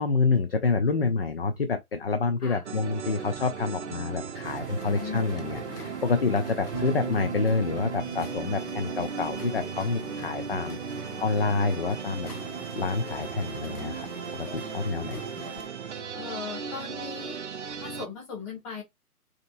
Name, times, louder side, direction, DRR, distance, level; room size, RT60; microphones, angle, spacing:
voice 1, 0.0-12.3 12.7-15.2, left 4 dB, 40° left, 0.5 m, -28 dB
sound 1, 2.6-18.1, right 6 dB, 50° right, 0.6 m, -37 dB
sound 2, 4.4-15.7, left 5 dB, 80° left, 0.8 m, -47 dB
voice 2, 5.0-5.3 16.1-17.4 17.8-18.8, left 5 dB, 20° left, 2.3 m, -38 dB
Bass guitar, 6.7-13.0, right 4 dB, 10° right, 0.6 m, -38 dB
5.0 x 2.9 x 2.6 m
figure-of-eight pair, 135°, 45 cm